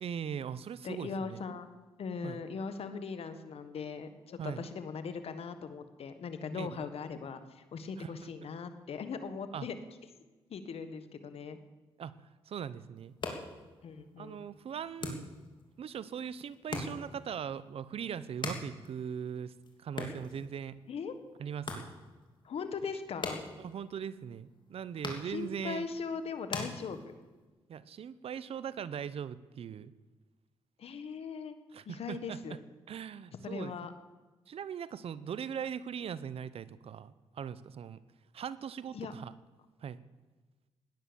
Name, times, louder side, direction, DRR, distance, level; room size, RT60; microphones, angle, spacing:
voice 1, 0.0-1.4 2.2-2.4 4.4-4.7 6.5-6.9 8.0-8.1 9.5-9.7 12.0-13.1 14.2-15.3 15.8-20.8 21.4-21.9 23.6-25.9 27.7-29.9 31.7-32.6 32.9-33.7 34.5-38.0 38.3-39.3 39.8-40.0, right 8 dB, 65° right, 17 dB, 0.8 m, -40 dB
voice 2, 0.8-1.7 2.0-9.8 10.5-11.6 13.8-14.4 20.9-21.1 22.4-23.4 25.3-27.0 30.8-31.5 31.8-32.6 33.4-33.9 38.9-39.1, left 5 dB, 70° left, 10 dB, 1.6 m, -39 dB
sound 1, 13.0-27.5, left 3 dB, 50° left, 3.3 m, -44 dB
17.0 x 10.5 x 7.1 m, 1.2 s
cardioid pair, 60°, 11 cm